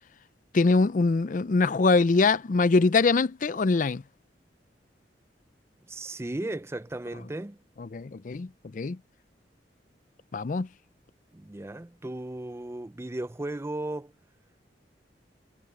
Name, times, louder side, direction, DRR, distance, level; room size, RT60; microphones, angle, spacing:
voice 1, 0.5-4.0 7.8-9.0 10.3-10.7, left 3 dB, 45° left, 0.4 m, -23 dB
voice 2, 5.9-7.6 11.3-14.1, right 2 dB, 15° right, 0.4 m, -35 dB
head